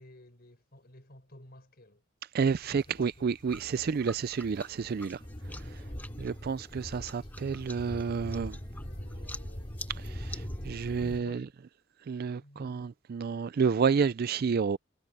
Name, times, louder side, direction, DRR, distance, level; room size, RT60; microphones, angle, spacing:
voice 1, 0.0-2.0 2.6-3.3 3.7-3.9 4.9-5.1 5.8-6.0 8.8-9.7 10.8-11.5 12.3-12.9, left 1 dB, 50° left, 5.1 m, -54 dB
voice 2, 2.3-5.2 5.5-5.8 6.2-8.6 9.9-11.5 12.0-14.8, right 6 dB, 50° right, 0.4 m, -30 dB
sound 1, 2.5-11.2, equal, 25° left, 2.5 m, -42 dB
sound 2, 3.5-11.2, left 2 dB, 10° left, 1.4 m, -50 dB
head